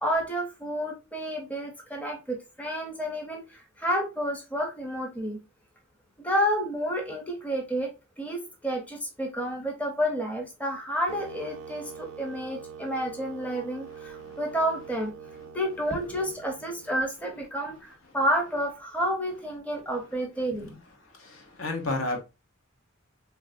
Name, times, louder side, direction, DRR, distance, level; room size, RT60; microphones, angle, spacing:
voice 1, 0.0-5.4 6.2-15.1 15.5-20.8, equal, 5° left, 0.5 m, -30 dB
sound 1, 11.1-17.2, right 7 dB, 85° right, 0.4 m, -44 dB
voice 2, 21.1-22.2, left 2 dB, 75° left, 0.8 m, -32 dB
3.2 x 2.4 x 2.5 m
head